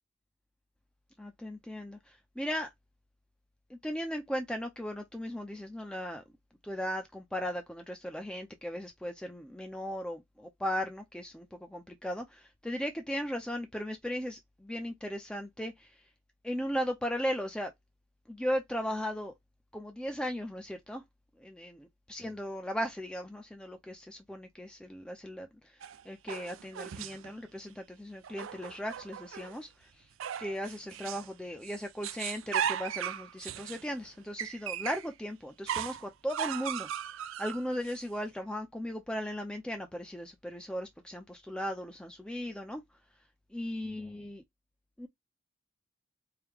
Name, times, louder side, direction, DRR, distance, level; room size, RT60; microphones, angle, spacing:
voice 1, 1.2-2.7 3.7-6.2 6.6-15.9 16.4-17.7 18.3-19.3 19.7-21.0 21.4-25.5 26.1-29.7 30.4-36.9 37.4-42.8 43.5-44.4 45.0-45.1, equal, 5° left, 0.5 m, -37 dB
sound 1, 25.8-27.3 28.2-29.6 30.2-31.3 31.6-35.1 35.7-38.0, right 9 dB, 65° right, 0.4 m, -37 dB
4.7 x 2.1 x 3.4 m
head